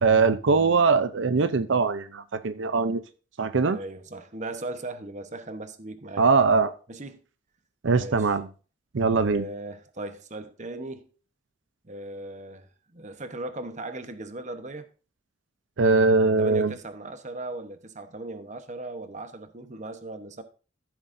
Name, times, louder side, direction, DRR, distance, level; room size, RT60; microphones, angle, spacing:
voice 1, 0.0-3.0 3.4-3.8 6.2-6.7 7.8-8.5 8.9-9.4 15.8-16.7, right 4 dB, 85° right, 0.6 m, -21 dB
voice 2, 3.6-6.3 6.9-7.2 7.9-8.3 9.1-11.1 11.8-14.9 16.4-20.4, right 2 dB, 40° right, 1.0 m, -38 dB
14.5 x 8.0 x 2.6 m
head